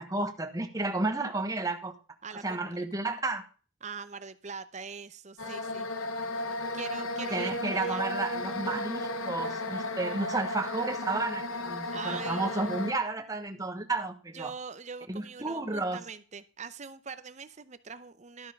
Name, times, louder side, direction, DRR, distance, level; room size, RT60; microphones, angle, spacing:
voice 1, 0.0-1.9 2.3-3.4 7.3-14.5 15.1-16.0, right 2 dB, 15° right, 5 dB, 1.2 m, -32 dB
voice 2, 2.2-2.9 3.8-5.9 6.7-8.0 11.9-12.7 14.3-18.5, right 5 dB, 35° right, 13 dB, 0.7 m, -43 dB
sound 1, 5.4-12.9, left 1 dB, 90° left, 1.1 m, -34 dB
12.5 x 6.6 x 5.3 m, 0.37 s
head